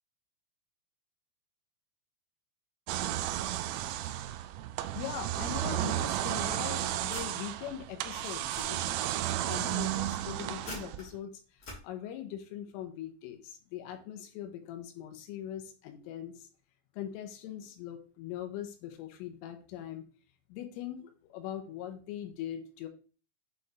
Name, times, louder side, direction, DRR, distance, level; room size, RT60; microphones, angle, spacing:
sound 1, 2.9-11.2, right 13 dB, 85° right, 2.6 m, -33 dB
voice 1, 5.0-8.9 9.4-16.5 16.9-20.1 20.5-22.9, left 10 dB, 85° left, 6 dB, 3.5 m, -41 dB
sound 2, 6.2-7.3 7.9-8.7 9.2-11.1 11.6-11.8, left 1 dB, 55° left, 1.4 m, -48 dB
8.1 x 4.4 x 3.2 m, 0.37 s
omnidirectional pair, 5.8 m